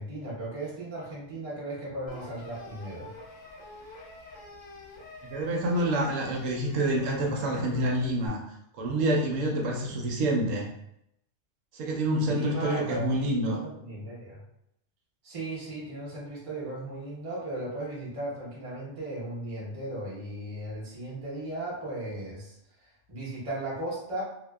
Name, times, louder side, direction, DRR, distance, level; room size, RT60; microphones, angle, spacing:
voice 1, 0.0-3.1 12.2-14.4 15.2-24.2, right 1 dB, 30° right, -5 dB, 0.8 m, -36 dB
sound 1, 2.1-8.3, left 2 dB, 50° left, 0.8 m, -46 dB
voice 2, 5.2-8.4 8.8-10.7 11.7-13.6, right 1 dB, 80° right, -1 dB, 0.9 m, -27 dB
2.7 x 2.1 x 2.2 m, 0.77 s
omnidirectional pair, 1.3 m